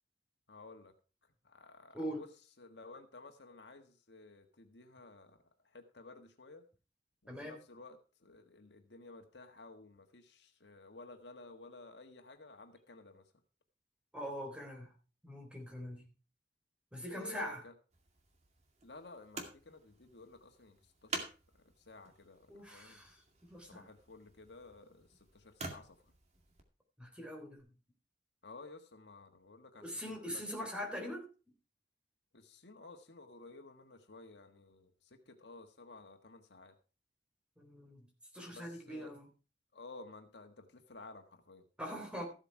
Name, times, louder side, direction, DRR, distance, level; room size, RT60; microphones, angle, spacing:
voice 1, 0.5-0.9 1.4-2.3 2.6-6.6 7.2-13.3 17.1-17.7 18.8-21.3 21.5-23.0 23.7-26.1 28.4-30.7 32.3-36.7 38.5-39.1 39.7-41.6, left 3 dB, 75° left, 6 dB, 1.5 m, -54 dB
voice 2, 14.1-14.9 15.2-16.1 16.9-17.6 22.5-23.2 23.5-23.8 27.0-27.6 29.8-31.2 37.6-38.0 38.3-39.2 41.8-42.2, equal, 5° right, 1 dB, 3.7 m, -42 dB
sound 1, 17.9-26.6 27.6-27.7, right 3 dB, 40° right, 2.2 m, -49 dB
14.0 x 8.1 x 4.6 m, 0.35 s
head